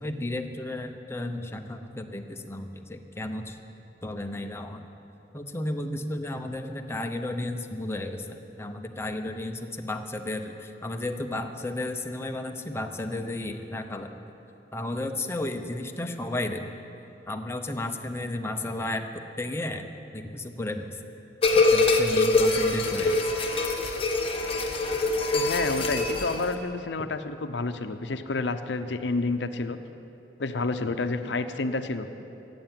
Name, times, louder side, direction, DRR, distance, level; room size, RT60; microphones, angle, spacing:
voice 1, 0.0-3.6 4.0-4.9 5.3-14.1 14.7-16.7 17.3-19.1 19.4-19.9 20.1-20.9 21.6-23.3, left 1 dB, 15° left, 4 dB, 0.8 m, -33 dB
sound 1, 21.4-26.5, left 2 dB, 30° left, 1.3 m, -24 dB
voice 2, 25.3-29.8 30.4-32.1, left 3 dB, 70° left, 9 dB, 0.7 m, -29 dB
15.0 x 7.9 x 9.0 m, 2.9 s
head